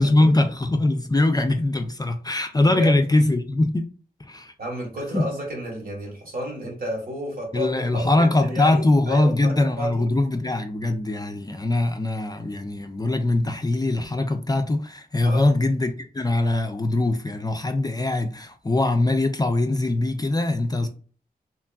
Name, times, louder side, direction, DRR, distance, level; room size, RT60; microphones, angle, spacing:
voice 1, 0.0-3.9 4.3-4.5 5.1-5.3 7.5-20.9, left 2 dB, 25° left, 0.3 m, -22 dB
voice 2, 2.6-3.0 4.6-10.1 15.2-15.4 20.8-20.9, right 1 dB, 65° right, 1.2 m, -31 dB
2.9 x 2.5 x 2.3 m
wide cardioid pair, 65°, 16 cm